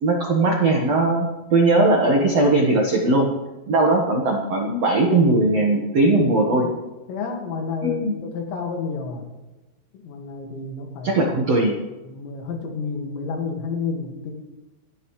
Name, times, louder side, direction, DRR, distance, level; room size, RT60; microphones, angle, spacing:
voice 1, 0.0-3.3 3.7-6.7 7.8-8.1 11.0-11.8, right 2 dB, 65° right, 0 dB, 1.6 m, -19 dB
voice 2, 7.1-9.3 10.0-11.1 12.1-14.3, left 4 dB, 75° left, 2 dB, 4.2 m, -30 dB
28.0 x 12.5 x 3.2 m, 1.1 s
omnidirectional pair, 5.3 m